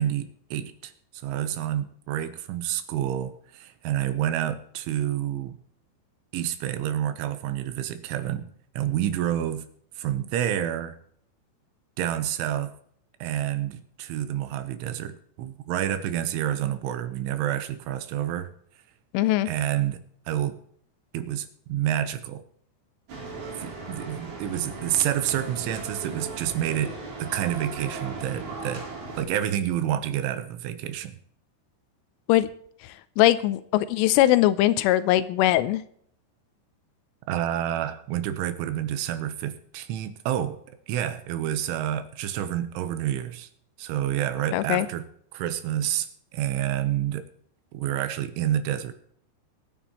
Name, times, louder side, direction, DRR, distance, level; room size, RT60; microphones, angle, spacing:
voice 1, 0.0-5.6 6.3-8.5 8.8-9.7 10.0-11.0 12.0-12.7 13.2-18.5 19.5-20.6 21.1-22.4 23.6-28.9 29.2-31.2 37.3-40.6 40.9-43.5 43.8-47.3 47.7-48.9, right 11 dB, 90° right, 11 dB, 3.4 m, -29 dB
voice 2, 19.1-19.5 32.3-32.5 33.2-35.8 44.5-44.9, left 14 dB, 90° left, 14 dB, 3.3 m, -21 dB
sound 1, 23.1-29.2, right 3 dB, 40° right, 4.2 m, -37 dB
22.5 x 9.2 x 3.1 m, 0.62 s
omnidirectional pair, 5.5 m